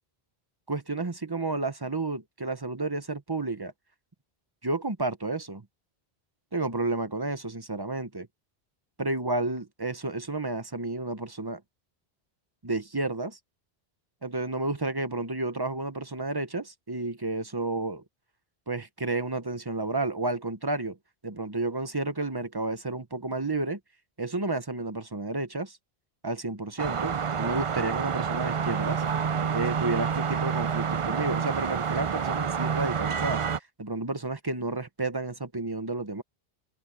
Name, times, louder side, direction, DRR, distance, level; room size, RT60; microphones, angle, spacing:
voice 1, 0.7-3.7 4.6-5.6 6.5-8.3 9.0-11.6 12.6-13.4 14.2-18.0 18.7-21.0 21.2-23.8 24.2-25.8 26.2-29.0 29.5-33.4 33.8-36.2, right 2 dB, 25° right, 1.0 m, -31 dB
sound 1, 26.8-33.6, right 6 dB, 40° right, 0.5 m, -28 dB
omnidirectional pair, 1.1 m